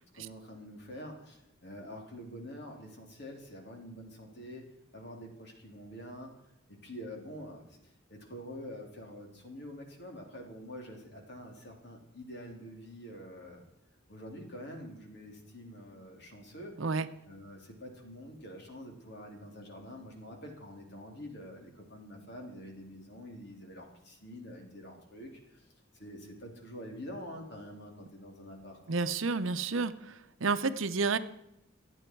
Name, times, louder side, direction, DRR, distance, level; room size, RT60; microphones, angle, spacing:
voice 1, 0.1-4.6 4.9-6.3 6.7-13.6 14.1-16.8 17.2-25.6 25.9-29.0, equal, 55° left, 2 dB, 3.3 m, -46 dB
voice 2, 28.9-31.2, right 4 dB, 75° right, 11 dB, 0.8 m, -30 dB
26.5 x 8.9 x 4.6 m, 0.84 s
head